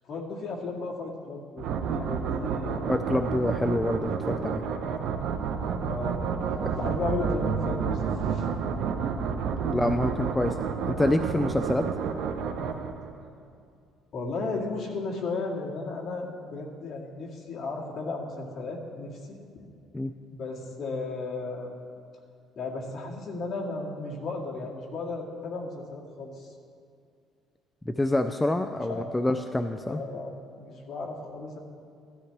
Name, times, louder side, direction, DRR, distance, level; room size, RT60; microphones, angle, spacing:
voice 1, 0.1-2.8 5.8-8.5 14.1-19.4 20.3-21.7 22.6-26.5 28.9-29.1 29.9-31.6, left 3 dB, 45° left, -3 dB, 2.2 m, -35 dB
sound 1, 1.6-13.3, right 6 dB, 70° right, 0.8 m, -30 dB
voice 2, 2.9-4.6 6.6-6.7 9.7-10.6 10.9-11.9 19.9-20.1 27.9-30.0, left 1 dB, 10° left, 7 dB, 0.3 m, -27 dB
16.0 x 13.0 x 3.4 m, 2.3 s
cardioid pair, 145°, 0 cm